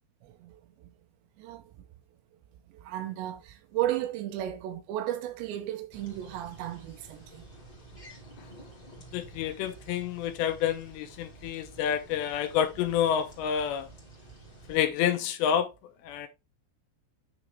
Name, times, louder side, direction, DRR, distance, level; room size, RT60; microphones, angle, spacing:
voice 1, 0.2-0.9 1.4-1.6 2.7-7.4, right 13 dB, 80° right, 3.0 m, -34 dB
sound 1, 5.9-14.8, right 2 dB, 20° left, 1.4 m, -50 dB
voice 2, 9.1-13.9 14.7-15.7 16.0-16.3, left 9 dB, 85° left, 2.8 m, -28 dB
9.4 x 3.9 x 3.2 m
omnidirectional pair, 5.2 m